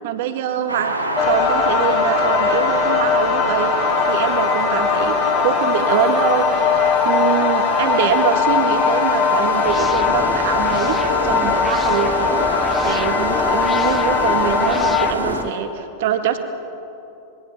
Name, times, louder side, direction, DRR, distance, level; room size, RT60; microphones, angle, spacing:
voice 1, 0.0-0.9 1.2-11.0 11.2-16.4, right 9 dB, 50° right, 7 dB, 2.1 m, -24 dB
sound 1, 0.7-15.4, right 2 dB, 85° right, 2.5 m, -27 dB
sound 2, 1.2-15.1, left 6 dB, 30° left, 3.4 m, -20 dB
sound 3, 9.6-15.5, left 4 dB, 15° left, 0.8 m, -31 dB
25.0 x 23.0 x 6.8 m, 2.8 s
figure-of-eight pair, 90°, 0 cm